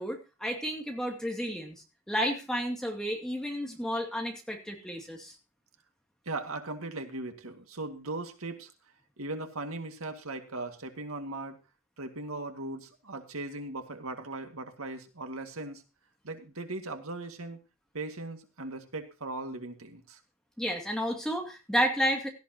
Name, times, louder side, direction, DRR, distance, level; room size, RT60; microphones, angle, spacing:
voice 1, 0.0-1.8 2.1-5.3 20.6-22.3, equal, 5° left, 1 dB, 2.5 m, -31 dB
voice 2, 6.3-8.7 9.2-11.6 12.0-15.8 16.2-17.6 17.9-20.2, right 2 dB, 85° right, 5 dB, 2.1 m, -38 dB
17.0 x 13.5 x 2.9 m, 0.29 s
head